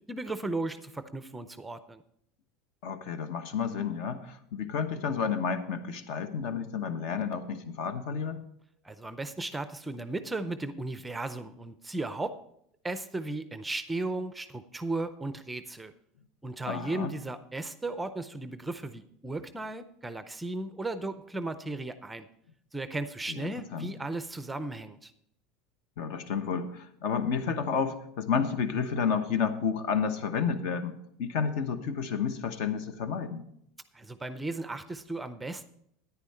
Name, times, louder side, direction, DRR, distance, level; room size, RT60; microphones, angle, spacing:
voice 1, 0.1-2.0 8.8-12.4 12.8-15.9 16.4-22.3 22.7-25.1 33.9-35.7, right 2 dB, 10° right, 11 dB, 0.5 m, -35 dB
voice 2, 2.8-8.4 16.7-17.1 23.3-23.9 26.0-33.4, left 6 dB, 60° left, 10 dB, 1.1 m, -31 dB
10.0 x 9.8 x 4.3 m, 0.73 s
supercardioid pair, 140°, 0 cm